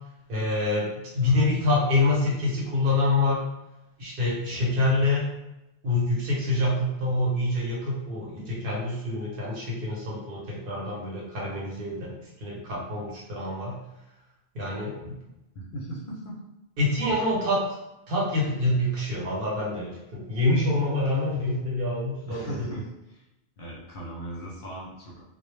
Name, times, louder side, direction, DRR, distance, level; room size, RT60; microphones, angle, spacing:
voice 1, 0.3-3.4 4.0-5.2 5.8-13.8 14.5-15.2 16.8-17.7 18.1-22.6, left 2 dB, 60° right, -4 dB, 0.9 m, -26 dB
voice 2, 1.1-1.4 4.5-5.0 12.7-12.8 15.0-15.2 15.6-16.4 17.0-17.2 21.3-21.4 22.3-23.2 23.6-25.2, right 1 dB, 55° left, -5 dB, 0.6 m, -39 dB
2.0 x 2.0 x 3.1 m, 0.94 s
omnidirectional pair, 1.1 m